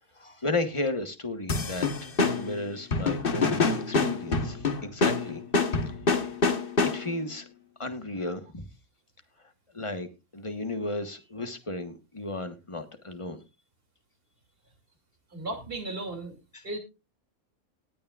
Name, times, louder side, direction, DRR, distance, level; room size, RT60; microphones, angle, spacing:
voice 1, 0.2-5.4 5.9-6.3 6.9-7.5 7.8-8.7 9.7-13.4 16.5-16.7, left 2 dB, 25° left, 7 dB, 1.3 m, -34 dB
sound 1, 1.5-7.3, left 3 dB, 40° left, 1.3 m, -27 dB
voice 2, 15.3-16.4 16.6-16.8, right 2 dB, 40° right, 4 dB, 3.1 m, -35 dB
19.0 x 8.6 x 2.4 m, 0.27 s
omnidirectional pair, 1.5 m